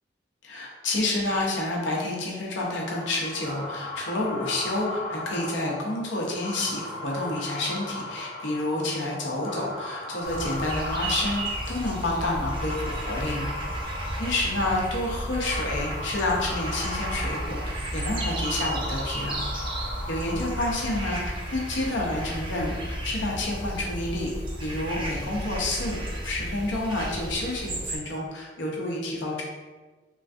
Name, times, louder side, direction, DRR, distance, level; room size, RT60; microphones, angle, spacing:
voice 1, 0.4-13.5 14.2-19.5 20.1-24.3 24.6-29.4, left 2 dB, 80° left, -2 dB, 0.7 m, -29 dB
sound 1, 2.6-21.5, left 1 dB, 40° left, 0.5 m, -37 dB
sound 2, 10.2-28.0, right 1 dB, 25° right, 0.4 m, -33 dB
3.1 x 2.5 x 2.4 m, 1.3 s
head